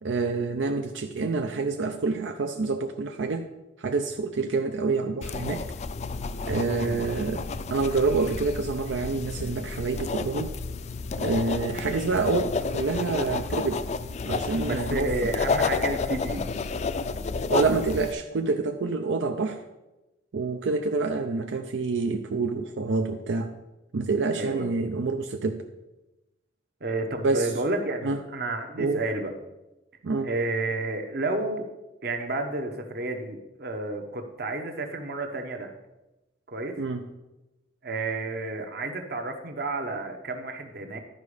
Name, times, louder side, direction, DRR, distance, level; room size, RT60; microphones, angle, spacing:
voice 1, 0.0-3.5 3.8-5.6 6.4-7.4 7.7-10.5 11.2-13.8 14.3-15.3 17.5-19.6 20.3-23.5 23.9-25.6 27.2-27.5 28.0-28.2 28.8-29.0 30.0-30.3 36.8-37.1, right 3 dB, 85° right, 6 dB, 0.5 m, -27 dB
sound 1, 5.2-18.1, left 4 dB, 40° left, 0.3 m, -31 dB
voice 2, 14.6-16.5 24.4-24.7 26.8-29.3 30.2-31.7 32.0-35.7 36.5-36.8 37.8-41.0, right 2 dB, 55° right, 5 dB, 1.0 m, -31 dB
11.5 x 5.2 x 4.9 m, 1.0 s
head